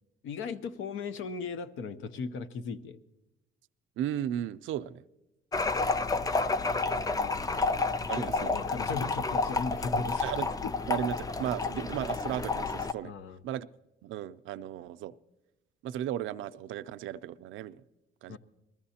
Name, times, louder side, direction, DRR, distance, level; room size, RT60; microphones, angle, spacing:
voice 1, 0.2-3.0 7.2-7.5 8.2-10.3 10.6-10.7 13.0-13.4 18.3-18.4, left 5 dB, 85° left, 12 dB, 0.7 m, -37 dB
voice 2, 4.0-5.0 8.1-8.5 10.2-10.5 10.9-13.1 13.4-13.7 14.0-15.1 15.8-17.8 18.2-18.4, right 11 dB, 80° right, 13 dB, 0.4 m, -35 dB
sound 1, 5.5-12.9, left 3 dB, 20° left, 0.4 m, -30 dB
20.5 x 14.0 x 2.8 m, 1.0 s
cardioid pair, 90°, 20 cm